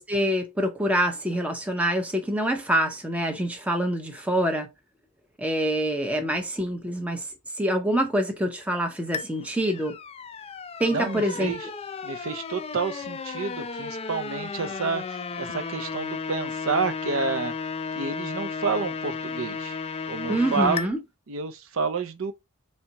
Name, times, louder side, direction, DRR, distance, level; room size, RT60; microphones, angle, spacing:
voice 1, 0.0-4.7 5.4-7.3 7.6-9.9 10.8-11.5 20.3-21.0, right 1 dB, 5° right, 0.6 m, -26 dB
sound 1, 9.1-20.9, left 5 dB, 25° left, 0.3 m, -34 dB
voice 2, 10.9-11.7 12.0-17.5 17.9-19.8 20.1-20.9 21.3-22.3, right 4 dB, 65° right, 0.6 m, -29 dB
4.2 x 3.4 x 2.9 m
head